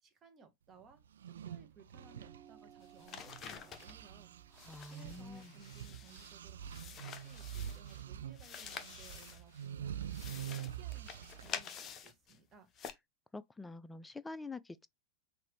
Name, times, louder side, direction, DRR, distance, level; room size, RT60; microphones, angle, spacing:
voice 1, 0.0-1.0 1.3-4.3 4.9-12.7, right 5 dB, 25° right, 1.1 m, -61 dB
sound 1, 1.1-3.4 3.7-11.6, right 9 dB, 65° right, 0.3 m, -46 dB
sound 2, 1.9-6.7, right 9 dB, 5° right, 0.8 m, -63 dB
sound 3, 2.8-4.0 4.5-6.4 6.6-8.0 8.3-9.7 10.0-12.4 12.8-12.9, left 7 dB, 30° left, 0.8 m, -48 dB
voice 2, 4.6-5.5 13.3-14.9, left 3 dB, 10° left, 0.4 m, -46 dB
5.8 x 2.6 x 3.1 m
figure-of-eight pair, 90°, 0 cm